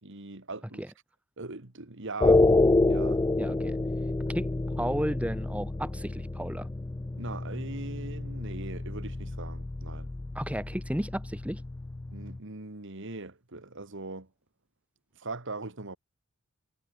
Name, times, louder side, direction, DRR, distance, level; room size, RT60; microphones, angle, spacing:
voice 1, 0.0-0.8 1.4-2.4 2.9-3.2 7.2-10.1 12.1-14.3 15.2-16.0, right 3 dB, 60° right, 2.1 m, -40 dB
sound 1, 2.2-12.4, left 2 dB, 15° left, 0.3 m, -28 dB
voice 2, 3.4-3.8 4.3-4.5 4.8-6.7 10.4-11.6, equal, 5° right, 1.8 m, -33 dB
head